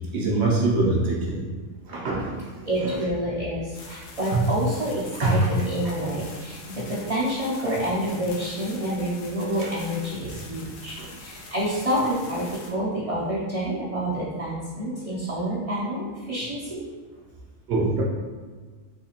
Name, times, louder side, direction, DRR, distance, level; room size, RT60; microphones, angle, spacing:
voice 1, 0.1-1.4 1.9-3.0 4.3-4.4 5.2-5.5 5.8-5.9 9.6-9.7 10.2-10.3 11.0-11.1 17.7-18.0, right 2 dB, 60° right, -3 dB, 0.9 m, -24 dB
voice 2, 2.7-16.8, right 1 dB, 45° right, -8 dB, 0.5 m, -28 dB
sound 1, 3.7-12.7, left 3 dB, 70° left, 0.9 m, -44 dB
4.2 x 2.8 x 2.8 m, 1.5 s
omnidirectional pair, 1.4 m